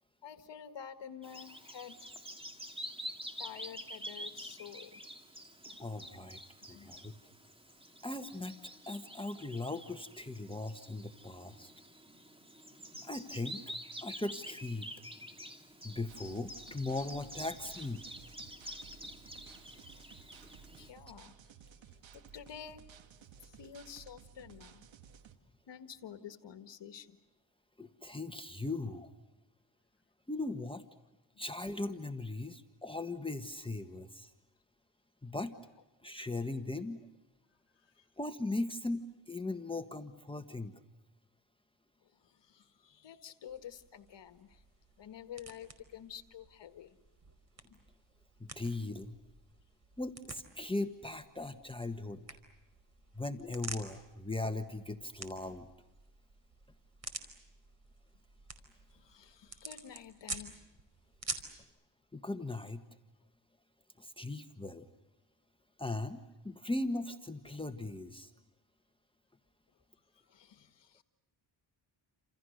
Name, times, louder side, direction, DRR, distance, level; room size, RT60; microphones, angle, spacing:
voice 1, 0.2-2.0 2.3-3.0 3.4-5.0 5.7-5.8 6.2-6.4 6.7-7.1 20.7-21.3 22.3-22.8 23.4-24.9 25.7-27.2 37.8-38.0 42.1-44.6 45.0-47.0 47.6-47.8 58.9-60.6 70.1-71.0, left 8 dB, 65° left, 9 dB, 1.8 m, -50 dB
Bird vocalization bird call bird song, 1.2-20.9, equal, 10° right, 3.2 m, -48 dB
voice 2, 5.8-6.4 6.7-7.1 8.0-11.7 13.0-13.6 14.0-14.9 15.8-18.0 27.8-29.1 30.3-30.8 31.4-34.3 35.2-35.5 36.0-37.0 38.2-39.0 39.3-40.8 48.4-49.2 50.0-52.2 53.1-55.7 62.1-62.8 64.0-64.9 65.8-68.3, left 2 dB, 10° left, 7 dB, 1.5 m, -38 dB
sound 1, 16.1-25.4, right 7 dB, 80° right, 2.3 m, -56 dB
sound 2, 43.5-61.6, right 3 dB, 35° right, 4.8 m, -49 dB
30.0 x 28.0 x 6.6 m, 1.0 s
cardioid pair, 100°, 45 cm